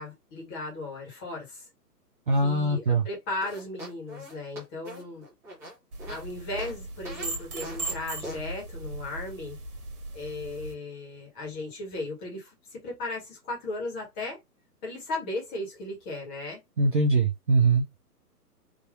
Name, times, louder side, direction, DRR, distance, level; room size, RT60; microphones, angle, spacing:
voice 1, 0.0-1.7 2.3-5.3 6.1-9.6 10.1-14.4 14.8-16.6, left 2 dB, 20° left, 1.5 m, -36 dB
voice 2, 2.3-3.0 16.8-18.0, right 3 dB, 35° right, 0.4 m, -22 dB
sound 1, 3.4-6.2 6.6-6.7 7.0-7.3 7.6-7.9 8.2-8.4, equal, 5° right, 0.8 m, -42 dB
sound 2, 5.9-10.7, right 2 dB, 65° right, 1.3 m, -38 dB
3.5 x 2.7 x 2.3 m
hypercardioid pair, 140°, 48 cm